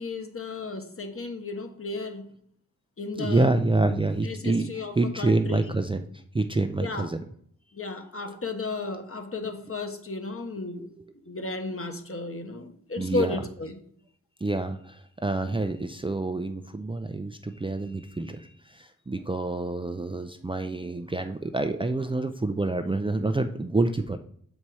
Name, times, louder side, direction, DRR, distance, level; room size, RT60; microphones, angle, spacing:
voice 1, 0.0-2.3 3.0-3.5 3.8-5.6 6.8-7.1 7.7-10.9 11.2-13.8, left 3 dB, 40° left, 6 dB, 1.2 m, -33 dB
voice 2, 3.2-6.0 6.3-7.2 10.8-11.0 13.0-13.4 14.4-24.2, right 2 dB, 15° right, 7 dB, 0.5 m, -27 dB
6.6 x 4.3 x 4.7 m, 0.64 s
cardioid pair, 45°, 34 cm